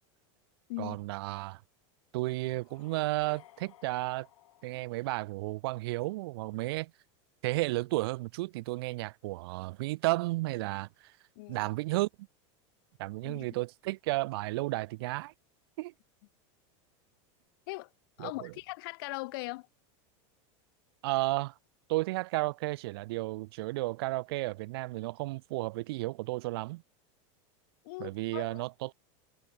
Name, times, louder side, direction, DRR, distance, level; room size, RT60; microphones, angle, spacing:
voice 1, 0.8-1.6 2.1-4.3 4.6-6.9 7.4-10.9 11.5-12.1 13.0-15.3 15.8-15.9 18.2-18.5 21.0-21.5 21.9-26.8 28.0-28.9, right 21 dB, 50° right, 0.5 m, -33 dB
sound 1, 2.6-5.6, left 14 dB, 90° left, 3.0 m, -58 dB
voice 2, 11.4-11.7 13.2-13.5 17.7-17.9 18.2-19.7 27.8-28.6, left 24 dB, 45° left, 0.9 m, -40 dB
supercardioid pair, 180°, 16 cm